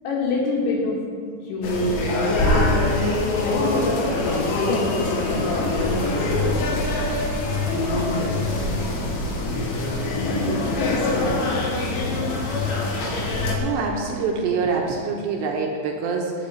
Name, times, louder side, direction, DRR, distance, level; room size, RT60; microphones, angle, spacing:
voice 1, 0.0-1.0 1.4-2.0 2.3-2.9 3.4-7.2 7.7-9.7 10.2-11.5 12.1-12.4, left 2 dB, 85° left, -8 dB, 4.7 m, -28 dB
sound 1, 1.6-13.6, left 2 dB, 70° left, 4.0 m, -24 dB
voice 2, 13.6-16.5, right 4 dB, 75° right, 0 dB, 2.9 m, -25 dB
19.0 x 8.5 x 4.4 m, 2.1 s
omnidirectional pair, 5.7 m